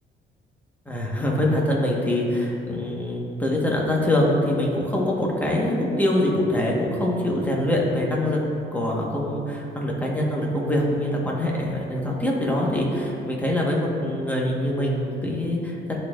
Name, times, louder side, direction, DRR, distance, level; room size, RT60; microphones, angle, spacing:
voice 1, 0.9-8.4 8.7-16.0, left 1 dB, 10° left, -3 dB, 1.4 m, -24 dB
12.0 x 4.4 x 2.5 m, 2.6 s
cardioid pair, 90°, 20 cm